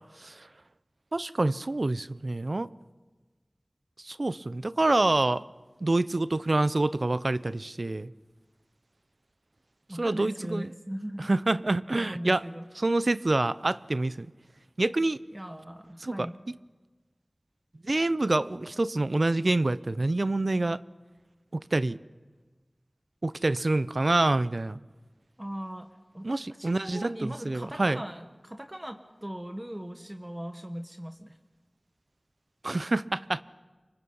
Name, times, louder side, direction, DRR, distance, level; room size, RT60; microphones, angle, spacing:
voice 1, 1.1-2.7 4.0-5.4 5.8-8.1 10.0-10.7 11.3-12.4 12.8-14.3 14.8-15.2 16.0-16.6 17.8-20.8 21.5-22.0 23.2-24.8 26.2-28.0 32.6-33.4, right 2 dB, 65° right, 16 dB, 0.7 m, -27 dB
voice 2, 9.9-11.3 11.9-12.6 15.3-16.4 25.4-25.9 26.1-31.4, equal, 20° right, 6 dB, 1.4 m, -39 dB
27.5 x 25.0 x 5.6 m, 1.3 s
wide cardioid pair, 45°, 0 cm